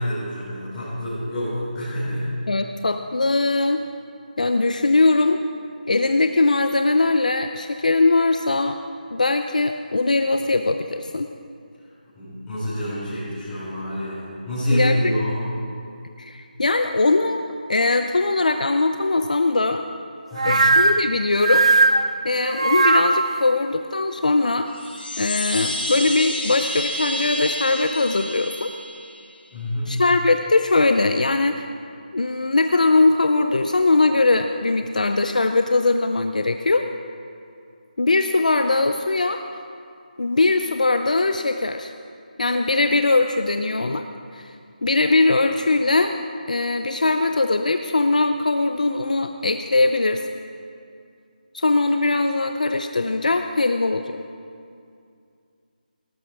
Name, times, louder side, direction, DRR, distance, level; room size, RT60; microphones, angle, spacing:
voice 1, 0.0-2.3 12.1-15.5 20.3-20.7 29.5-30.0, equal, 5° left, -15 dB, 4.8 m, -27 dB
voice 2, 2.5-3.8 4.4-5.4 5.9-8.8 9.1-11.3 14.7-15.1 16.2-19.8 20.4-21.7 22.2-24.7 25.2-28.7 29.9-31.6 32.1-36.9 38.0-39.4 40.2-41.9 42.4-44.0 44.3-44.5 44.8-46.1 46.5-50.2 51.5-54.2, left 3 dB, 55° left, 6 dB, 0.7 m, -20 dB
sound 1, 20.4-23.5, right 3 dB, 40° right, 0.6 m, -18 dB
Chime, 24.7-29.4, left 1 dB, 90° left, 2.3 m, -29 dB
18.0 x 14.5 x 4.8 m, 2.4 s
figure-of-eight pair, 180°, 5 cm